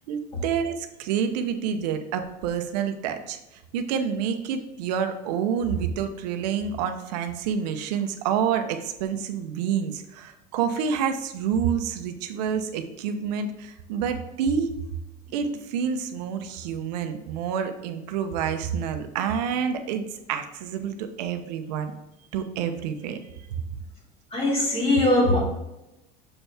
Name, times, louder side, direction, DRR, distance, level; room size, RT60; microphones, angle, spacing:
voice 1, 0.0-3.4 3.7-14.7 15.3-21.9 22.3-23.2, right 7 dB, 85° right, 7 dB, 0.8 m, -28 dB
voice 2, 24.3-25.4, left 1 dB, 30° left, -2 dB, 2.2 m, -21 dB
6.7 x 4.5 x 3.4 m, 0.94 s
supercardioid pair, 130°, 20 cm